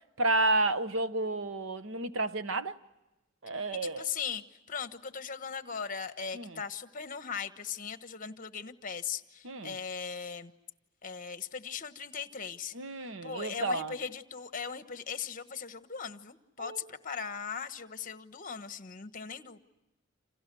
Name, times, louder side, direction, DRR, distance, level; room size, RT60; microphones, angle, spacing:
voice 1, 0.2-2.7 3.4-4.1 6.3-6.6 9.4-9.7 12.7-13.9 16.6-16.9, right 2 dB, 75° right, 1.1 m, -31 dB
voice 2, 3.7-10.5 11.0-19.6, left 6 dB, 45° left, 1.2 m, -39 dB
29.5 x 28.0 x 6.1 m
head